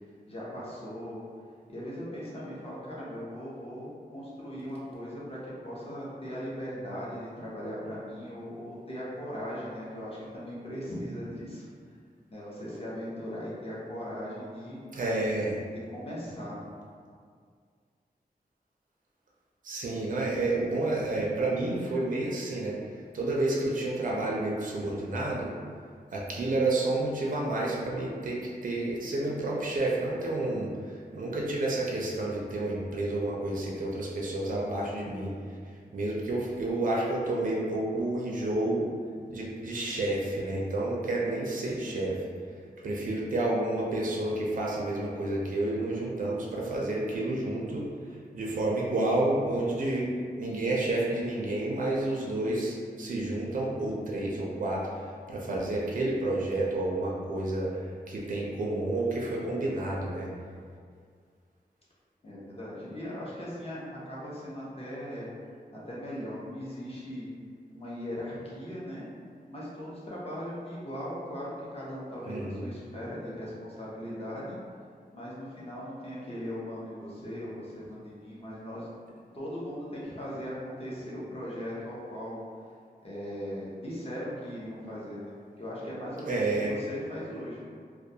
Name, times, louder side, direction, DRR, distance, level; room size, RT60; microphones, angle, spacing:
voice 1, 0.3-1.2 1.7-11.7 12.3-14.8 15.7-16.7 62.2-65.3 65.7-67.3 67.7-69.0 69.5-74.6 75.1-82.4 83.0-87.6, equal, 35° left, -7 dB, 0.7 m, -39 dB
voice 2, 14.9-15.6 19.6-22.8 23.1-25.5 26.1-35.4 35.9-38.9 39.3-42.3 42.8-47.9 48.3-50.1 50.4-57.8 58.1-60.3 72.3-72.7 86.3-86.7, right 2 dB, 55° right, -4 dB, 0.4 m, -30 dB
2.2 x 2.2 x 2.7 m, 2.1 s
wide cardioid pair, 105°, 16 cm